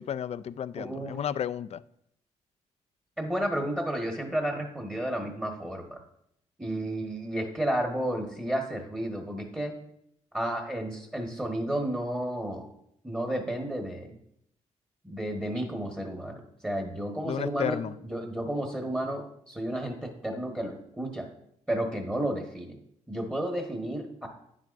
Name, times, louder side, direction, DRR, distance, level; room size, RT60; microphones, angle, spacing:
voice 1, 0.0-1.8 17.2-17.9, left 9 dB, 50° left, 14 dB, 0.4 m, -32 dB
voice 2, 0.7-1.2 3.2-6.0 6.6-9.7 10.3-12.7 13.0-14.1 15.0-21.3 21.7-22.8 23.1-24.3, right 1 dB, 10° right, 1 dB, 1.4 m, -32 dB
9.5 x 7.4 x 2.6 m, 0.74 s
supercardioid pair, 60°, 13 cm